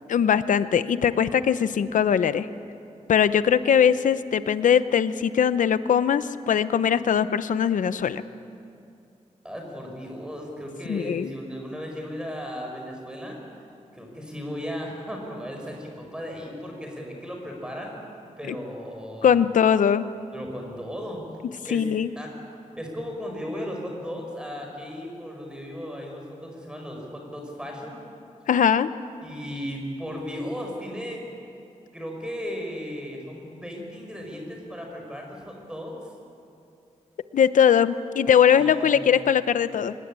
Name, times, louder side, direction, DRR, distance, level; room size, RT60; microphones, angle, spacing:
voice 1, 0.1-2.5 3.1-8.2 10.9-11.3 18.5-18.6 19.2-20.1 21.7-22.1 28.5-28.9 37.3-39.9, left 8 dB, 90° left, 13 dB, 0.8 m, -21 dB
voice 2, 9.4-13.4 13.9-17.9 18.4-19.4 20.3-21.2 21.7-21.8 22.2-22.3 22.8-28.0 29.2-31.2 31.9-36.0 38.5-39.4, equal, 5° right, 1 dB, 5.9 m, -36 dB
24.0 x 21.0 x 9.0 m, 2.5 s
wide cardioid pair, 130°, 13 cm